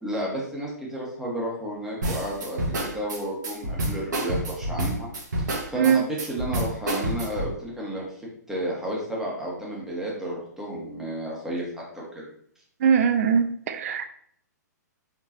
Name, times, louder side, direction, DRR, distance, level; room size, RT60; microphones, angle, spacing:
voice 1, 0.0-5.1 5.4-8.1 8.5-11.6 11.9-12.3, right 1 dB, 5° right, -5 dB, 1.6 m, -32 dB
sound 1, 2.0-7.5, right 1 dB, 75° right, 1.7 m, -28 dB
voice 2, 12.8-14.1, right 7 dB, 50° right, 9 dB, 0.6 m, -21 dB
4.6 x 3.8 x 2.9 m, 0.65 s
hypercardioid pair, 135°, 10 cm